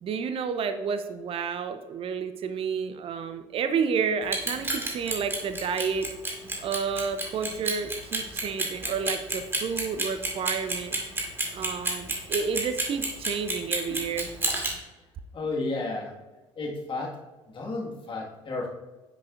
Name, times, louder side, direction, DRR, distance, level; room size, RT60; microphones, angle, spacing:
voice 1, 0.0-6.1 6.6-11.0 11.5-14.3, right 6 dB, 35° right, 9 dB, 0.6 m, -30 dB
Clock, 4.2-14.7, right 2 dB, 15° right, 2.1 m, -29 dB
voice 2, 15.3-16.1 16.6-17.1 17.5-18.7, left 3 dB, 30° left, -1 dB, 1.9 m, -32 dB
9.7 x 6.1 x 2.6 m, 1.1 s
figure-of-eight pair, 60°, 17 cm